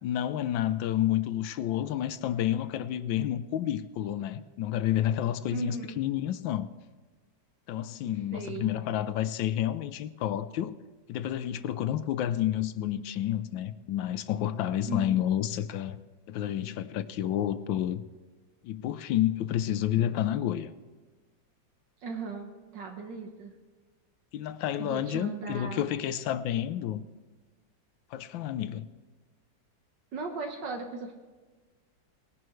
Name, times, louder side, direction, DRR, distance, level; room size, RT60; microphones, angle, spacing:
voice 1, 0.0-6.7 7.7-10.7 11.1-16.0 16.3-18.0 18.6-20.7 24.3-27.0 28.1-28.8, left 11 dB, 80° left, 1.4 m, -30 dB
voice 2, 5.5-6.0 8.0-8.7 14.9-15.2 22.0-23.5 24.8-25.9 30.1-31.1, right 4 dB, 70° right, 1.8 m, -37 dB
20.0 x 11.0 x 3.1 m
omnidirectional pair, 2.0 m